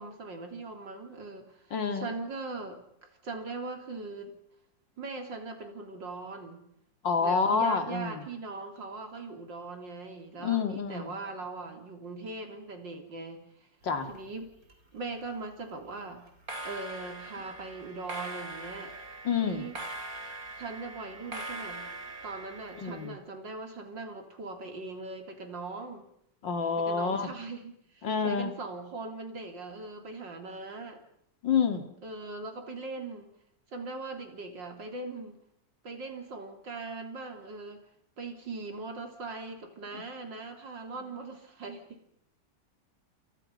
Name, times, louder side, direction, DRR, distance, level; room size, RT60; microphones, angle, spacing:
voice 1, 0.0-1.6 1.9-4.3 5.0-6.6 7.2-13.4 14.1-14.5 14.9-16.3 16.6-19.0 19.4-19.8 20.6-21.8 22.2-26.0 26.8-31.0 32.0-33.3 33.7-35.4 35.8-37.8 38.2-42.0, right 3 dB, 85° right, 5 dB, 4.1 m, -40 dB
voice 2, 1.7-2.1 7.0-8.2 10.4-11.1 13.8-14.1 19.2-19.6 22.8-23.2 26.4-27.3 28.0-28.5 31.4-31.9 39.9-40.0, left 6 dB, 85° left, 7 dB, 3.2 m, -28 dB
sound 1, 13.8-14.7 15.0-15.4 16.3-23.1, right 2 dB, 50° right, 4.2 m, -42 dB
29.5 x 28.0 x 5.6 m, 0.73 s
omnidirectional pair, 1.9 m